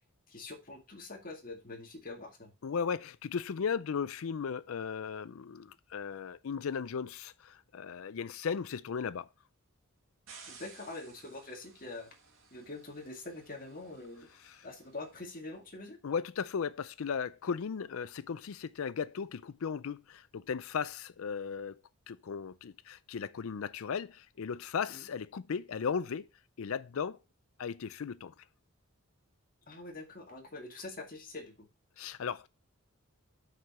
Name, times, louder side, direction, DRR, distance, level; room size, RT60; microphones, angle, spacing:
voice 1, 0.3-2.5 10.5-12.1 12.5-14.3 14.6-16.0 24.9-25.1 29.7-31.7, left 2 dB, 40° left, 2.1 m, -45 dB
voice 2, 2.6-9.3 14.4-14.6 16.0-21.8 22.1-26.3 26.6-27.2 27.6-28.3 32.0-32.5, left 6 dB, 70° left, 0.4 m, -36 dB
sound 1, 10.3-15.4, right 5 dB, 60° right, 2.3 m, -57 dB
8.0 x 4.9 x 5.5 m
head